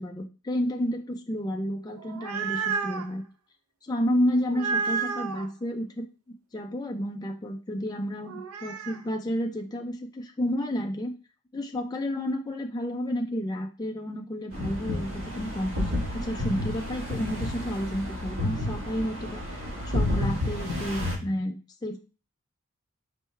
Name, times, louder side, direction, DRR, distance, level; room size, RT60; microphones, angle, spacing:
voice 1, 0.0-3.3 3.8-11.1 11.5-22.2, equal, 20° left, 3 dB, 0.3 m, -31 dB
sound 1, 1.9-3.1 4.5-5.5 8.3-9.0, right 5 dB, 90° right, 0.5 m, -31 dB
sound 2, 14.5-21.1, left 1 dB, 65° right, 1.7 m, -31 dB
4.4 x 3.4 x 3.1 m, 0.33 s
head